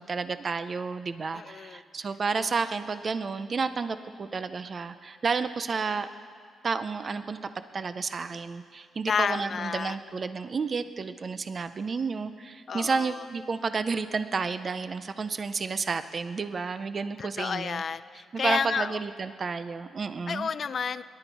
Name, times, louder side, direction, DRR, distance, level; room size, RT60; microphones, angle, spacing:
voice 1, 0.0-6.1 6.6-7.4 7.7-17.8 18.3-20.5, right 4 dB, 30° right, 12 dB, 0.4 m, -31 dB
voice 2, 1.3-1.8 9.1-10.0 12.7-13.2 17.2-19.0 20.3-21.0, left 6 dB, 40° left, 14 dB, 0.3 m, -31 dB
23.5 x 11.5 x 4.6 m, 2.1 s
wide cardioid pair, 165°, 0 cm